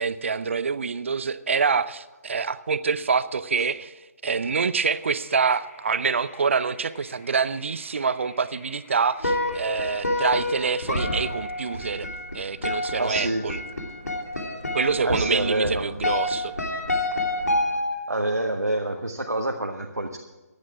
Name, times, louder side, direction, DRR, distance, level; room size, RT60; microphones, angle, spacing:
voice 1, 0.0-3.9 4.2-13.6 14.7-16.5, right 5 dB, 50° right, 15 dB, 0.7 m, -26 dB
sound 1, 4.6-12.0, left 3 dB, 25° left, 5.1 m, -52 dB
sound 2, 9.2-18.2, left 1 dB, 70° left, 2.8 m, -28 dB
voice 2, 13.0-13.4 15.0-15.9 18.1-20.2, right 1 dB, 80° right, 3 dB, 1.2 m, -27 dB
15.0 x 10.5 x 4.8 m, 1.2 s
figure-of-eight pair, 145°, 9 cm